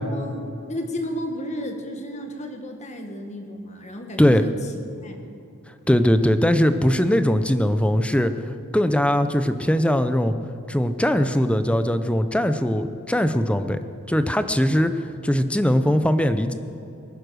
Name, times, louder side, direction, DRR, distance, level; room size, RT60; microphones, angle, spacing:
voice 1, 0.0-4.5 5.0-5.2, equal, 30° left, 4 dB, 1.7 m, -33 dB
voice 2, 5.9-10.3 10.7-13.8 14.1-16.5, equal, 5° left, 10 dB, 0.6 m, -20 dB
23.0 x 10.0 x 6.4 m, 2.8 s
head